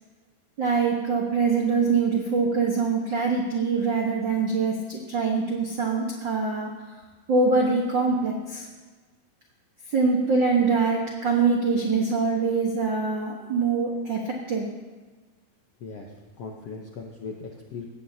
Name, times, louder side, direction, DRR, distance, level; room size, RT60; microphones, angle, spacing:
voice 1, 0.6-6.7 7.3-8.7 9.9-14.7, right 4 dB, 80° right, -1 dB, 1.0 m, -24 dB
voice 2, 15.8-16.1 16.4-17.9, left 4 dB, 75° left, 1 dB, 1.4 m, -38 dB
18.5 x 15.0 x 2.8 m, 1.3 s
omnidirectional pair, 4.3 m